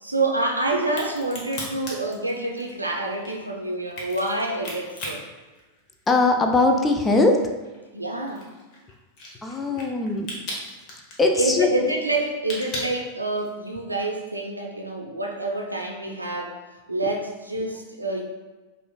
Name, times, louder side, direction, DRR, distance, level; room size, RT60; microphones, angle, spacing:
voice 1, 0.0-5.2 7.9-8.5 11.4-16.6 16.9-18.2, right 2 dB, 85° right, 1 dB, 0.5 m, -27 dB
Crack, 0.8-6.3 6.7-13.7, left 1 dB, 35° left, 1.0 m, -38 dB
voice 2, 6.1-7.4 9.4-10.3 11.2-11.7, left 3 dB, 15° left, 3 dB, 0.4 m, -20 dB
4.8 x 2.5 x 2.3 m, 1.2 s
figure-of-eight pair, 90°, 0 cm